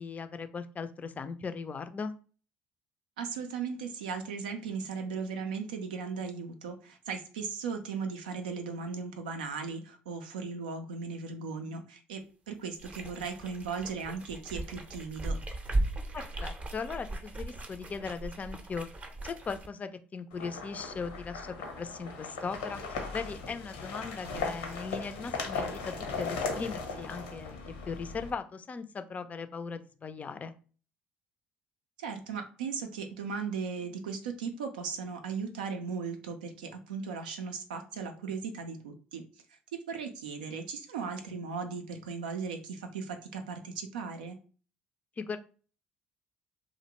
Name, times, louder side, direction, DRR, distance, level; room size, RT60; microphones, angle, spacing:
voice 1, 0.0-2.2 16.1-18.9 19.2-27.6 27.8-30.5 45.2-45.4, left 5 dB, 35° left, 10 dB, 0.4 m, -38 dB
voice 2, 3.2-15.4 24.2-24.5 32.0-39.2 39.7-44.4, right 5 dB, 85° right, 6 dB, 0.4 m, -37 dB
sound 1, 12.7-19.7, right 2 dB, 30° right, 0.6 m, -37 dB
sound 2, 20.3-28.3, left 4 dB, 85° left, 0.7 m, -38 dB
2.4 x 2.1 x 2.9 m, 0.39 s
hypercardioid pair, 60°, 5 cm